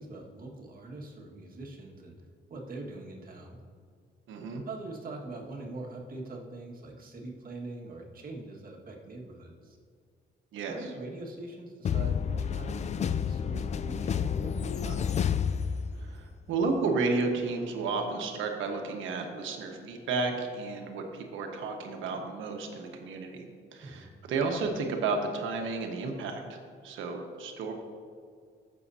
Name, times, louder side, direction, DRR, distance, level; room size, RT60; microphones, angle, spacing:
voice 1, 0.0-2.1 2.5-3.6 4.7-9.8 10.7-15.2 23.8-24.1, right 2 dB, 45° right, -1 dB, 1.8 m, -43 dB
voice 2, 4.3-4.6 10.5-10.9 16.0-26.6 26.8-27.7, right 4 dB, 85° right, 3 dB, 1.3 m, -32 dB
sound 1, 11.8-16.3, left 7 dB, 35° left, 0.4 m, -30 dB
15.0 x 6.7 x 2.8 m, 2.1 s
cardioid pair, 90°, 20 cm